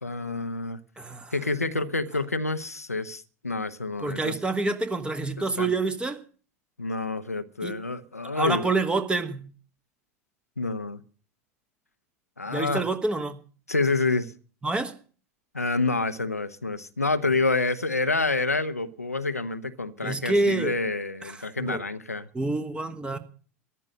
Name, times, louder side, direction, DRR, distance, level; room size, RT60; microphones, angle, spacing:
voice 1, 0.0-0.8 1.3-4.4 5.6-5.7 6.8-8.7 10.6-11.0 12.4-12.8 13.7-14.3 15.5-22.3, left 3 dB, 90° left, 0.8 m, -28 dB
voice 2, 1.0-1.3 4.0-6.2 7.6-7.7 8.3-9.5 12.5-13.4 14.6-15.0 20.0-20.7 21.6-21.8 22.3-23.2, right 3 dB, 10° right, 1.5 m, -27 dB
14.0 x 11.0 x 6.6 m
figure-of-eight pair, 85°, 8 cm